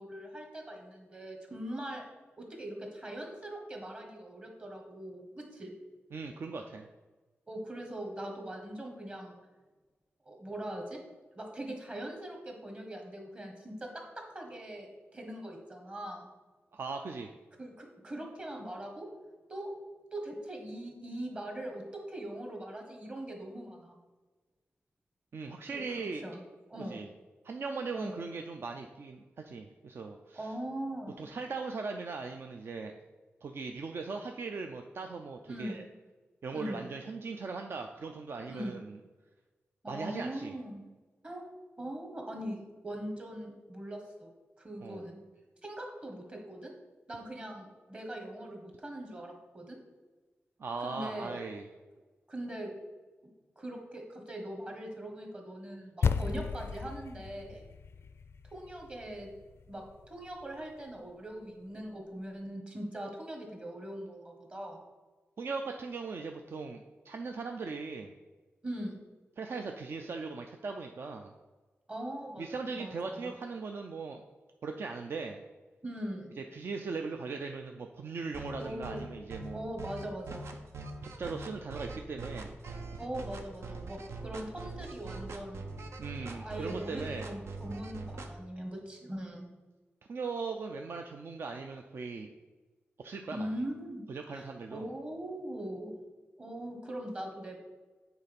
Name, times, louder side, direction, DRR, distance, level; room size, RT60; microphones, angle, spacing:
voice 1, 0.0-2.1 2.4-5.7 7.5-9.4 10.2-11.0 11.3-13.9 14.3-16.3 17.6-19.1 19.5-19.7 20.1-24.0 25.7-26.4 26.7-27.1 27.9-28.2 30.3-31.3 35.5-35.8 36.5-36.9 38.5-38.7 39.8-40.8 41.2-41.5 41.8-42.6 42.8-44.3 44.6-45.2 45.6-46.7 47.1-49.8 50.8-51.4 52.3-52.7 53.6-57.6 58.5-59.3 59.7-64.8 68.6-69.0 71.9-72.4 72.7-73.3 75.8-76.3 78.6-79.0 79.5-80.5 83.0-85.7 86.2-89.5 93.3-94.0 94.3-95.9 96.4-97.6, right 1 dB, 25° right, 2 dB, 1.4 m, -41 dB
voice 2, 6.1-6.9 16.7-17.3 25.3-26.2 26.9-27.1 27.4-30.5 31.2-33.0 33.4-35.8 36.4-39.0 39.9-40.6 44.8-45.0 50.6-51.7 56.0-56.1 65.4-68.1 69.4-71.3 72.4-74.2 74.6-75.4 76.5-79.7 81.2-82.5 86.0-87.3 90.1-92.3 93.0-93.5 94.1-94.9, right 4 dB, 60° right, 4 dB, 0.5 m, -39 dB
sound 1, 56.0-60.5, left 6 dB, 70° left, 0.4 m, -35 dB
sound 2, 78.3-88.3, right 3 dB, 85° right, 0.8 m, -42 dB
8.1 x 4.1 x 5.2 m, 1.3 s
wide cardioid pair, 135°, 5 cm